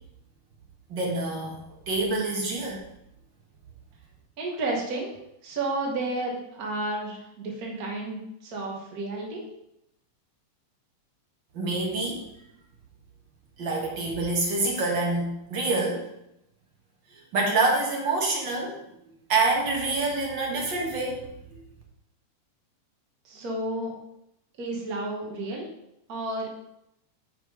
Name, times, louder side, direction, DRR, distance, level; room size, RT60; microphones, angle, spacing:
voice 1, 0.9-1.6 1.9-2.8 11.5-12.2 13.6-16.0 17.3-18.7 19.3-21.2 21.5-21.6, right 3 dB, 50° right, -1 dB, 1.4 m, -26 dB
voice 2, 4.4-5.1 5.4-9.5 23.2-23.9 24.6-25.6 26.1-26.5, right 2 dB, 85° right, -1 dB, 0.8 m, -31 dB
5.9 x 5.4 x 4.7 m, 0.82 s
omnidirectional pair, 3.6 m